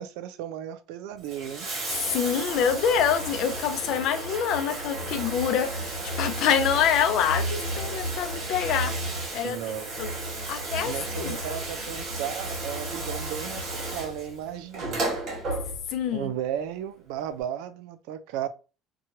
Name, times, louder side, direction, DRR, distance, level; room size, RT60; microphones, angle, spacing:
voice 1, 0.0-1.7 9.4-9.9 10.8-15.0 16.1-18.5, right 10 dB, 85° right, 0.4 m, -34 dB
Bathtub (filling or washing), 1.1-16.1 17.2-17.3, right 2 dB, 40° right, 1.4 m, -33 dB
voice 2, 1.9-9.1 9.3-9.6 10.0-10.1 10.5-11.4 15.9-16.3, left 8 dB, 55° left, 0.5 m, -26 dB
2.8 x 2.2 x 2.8 m
cardioid pair, 160°, 0 cm